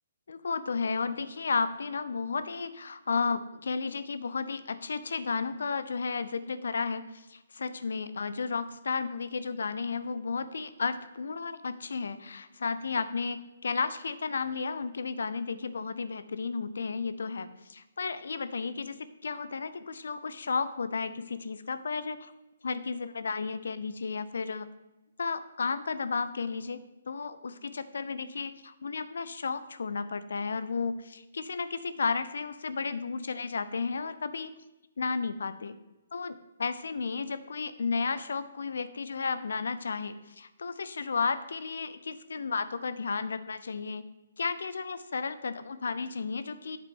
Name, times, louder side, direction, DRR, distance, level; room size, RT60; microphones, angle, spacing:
voice 1, 0.3-22.3 22.6-24.7 25.2-34.5 35.0-35.7 36.1-44.0 44.4-46.8, left 4 dB, 70° left, 13 dB, 0.5 m, -33 dB
8.3 x 7.3 x 3.7 m, 1.0 s
figure-of-eight pair, 135°, 0 cm